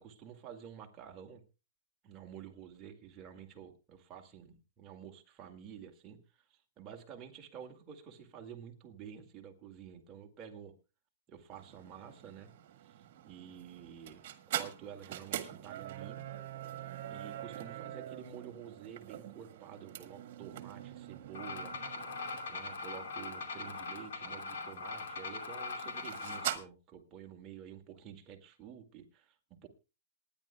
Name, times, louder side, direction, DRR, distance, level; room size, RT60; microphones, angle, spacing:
voice 1, 0.0-1.4 2.0-10.7 11.3-12.5 12.8-16.2 17.1-21.8 22.2-29.7, right 8 dB, 20° right, 2 dB, 2.1 m, -50 dB
sound 1, 11.5-26.6, right 12 dB, 50° right, 1.7 m, -44 dB
sound 2, 21.3-26.5, left 4 dB, 80° left, 2.6 m, -41 dB
27.0 x 10.5 x 2.3 m, 0.30 s
hypercardioid pair, 160°, 0 cm